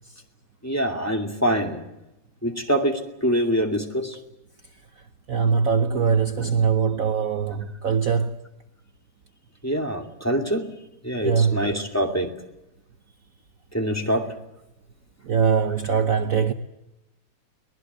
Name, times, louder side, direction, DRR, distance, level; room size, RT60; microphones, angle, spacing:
voice 1, 0.6-1.8 2.4-4.2 9.6-10.6 11.0-12.3 13.7-14.3, equal, 10° left, 2.4 m, -24 dB
voice 2, 5.3-8.3 11.2-11.6 15.3-16.5, right 6 dB, 55° right, 1.3 m, -22 dB
23.5 x 19.5 x 8.1 m
omnidirectional pair, 2.1 m